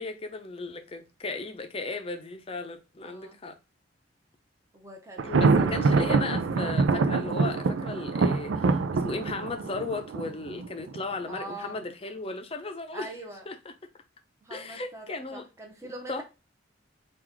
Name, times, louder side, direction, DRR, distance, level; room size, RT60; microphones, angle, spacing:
voice 1, 0.0-3.6 5.2-13.1 13.5-13.7 14.5-15.5 15.8-16.2, left 3 dB, 30° left, 0.6 m, -36 dB
voice 2, 3.0-3.4 4.7-5.9 11.2-11.8 12.9-13.5 14.4-16.2, right 1 dB, 15° right, 0.9 m, -43 dB
Thunder, 5.2-11.0, right 4 dB, 90° right, 0.4 m, -25 dB
3.9 x 2.5 x 4.4 m
head